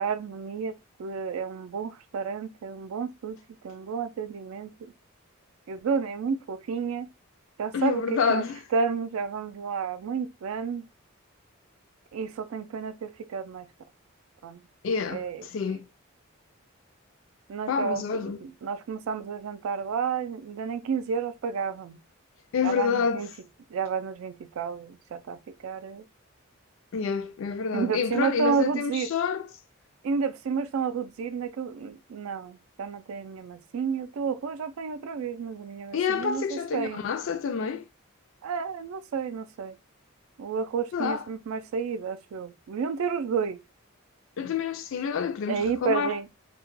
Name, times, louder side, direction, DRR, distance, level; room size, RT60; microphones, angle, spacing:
voice 1, 0.0-3.4 3.6-4.9 5.7-7.1 7.6-8.4 8.7-10.8 12.1-13.7 14.4-14.6 15.1-15.8 17.5-22.0 22.6-23.3 23.7-26.0 27.7-29.1 30.0-37.0 38.4-39.8 40.4-43.6 45.5-46.3, right 6 dB, 80° right, 0.3 m, -31 dB
voice 2, 7.7-8.6 14.8-15.8 17.7-18.4 22.5-23.2 26.9-29.5 35.9-37.8 40.9-41.2 44.4-46.2, left 6 dB, 65° left, 0.3 m, -28 dB
2.2 x 2.1 x 3.0 m
head